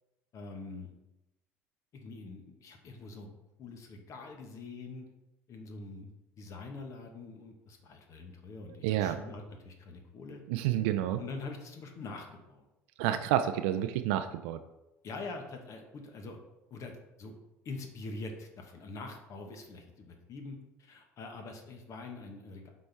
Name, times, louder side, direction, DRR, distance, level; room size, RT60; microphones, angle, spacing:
voice 1, 0.3-0.9 1.9-3.3 3.6-5.1 5.5-6.1 6.4-10.4 11.2-12.6 15.0-16.4 16.7-17.3 17.6-22.7, left 3 dB, 50° left, 3 dB, 1.2 m, -44 dB
voice 2, 8.8-9.2 10.5-11.2 13.0-14.6, right 11 dB, 75° right, 9 dB, 0.4 m, -29 dB
7.6 x 4.2 x 3.4 m, 0.94 s
hypercardioid pair, 80°, 7 cm